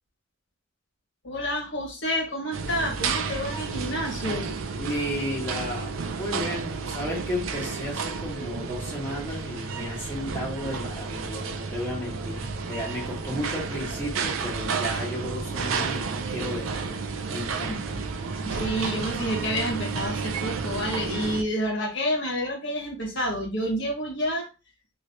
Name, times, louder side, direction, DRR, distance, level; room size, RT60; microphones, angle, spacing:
voice 1, 1.2-4.6 17.7-17.8 18.4-24.5, equal, 60° left, 1.4 m, -29 dB
sound 1, 2.5-21.4, right 5 dB, 75° right, 0.5 m, -31 dB
voice 2, 4.8-18.0, left 1 dB, 10° left, 1.4 m, -34 dB
3.2 x 2.8 x 2.6 m
head